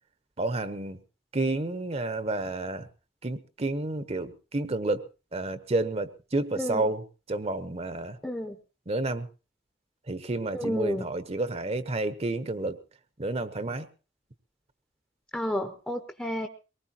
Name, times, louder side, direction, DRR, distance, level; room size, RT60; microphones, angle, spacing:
voice 1, 0.4-1.0 1.3-2.9 3.2-5.0 5.3-8.2 8.9-9.3 10.1-12.8 13.2-13.9, right 2 dB, 35° right, 12 dB, 0.9 m, -30 dB
voice 2, 8.2-8.6 10.5-11.0 15.3-16.5, equal, 5° left, 6 dB, 0.8 m, -31 dB
22.5 x 19.0 x 2.9 m, 0.33 s
head